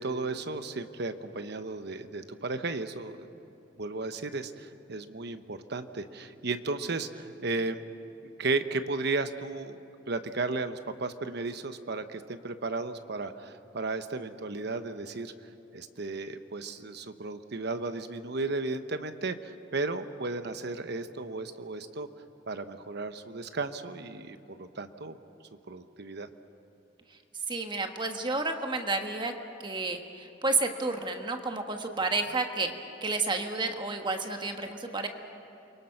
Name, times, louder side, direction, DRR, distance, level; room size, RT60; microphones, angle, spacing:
voice 1, 0.0-3.3 3.8-7.8 8.4-9.8 10.1-15.3 15.7-22.1 22.5-25.2 25.7-26.3, right 3 dB, 60° right, 9 dB, 1.1 m, -34 dB
voice 2, 27.5-29.3 29.6-32.7 33.0-35.1, right 3 dB, 25° right, 5 dB, 1.3 m, -31 dB
29.0 x 23.5 x 5.9 m, 2.9 s
head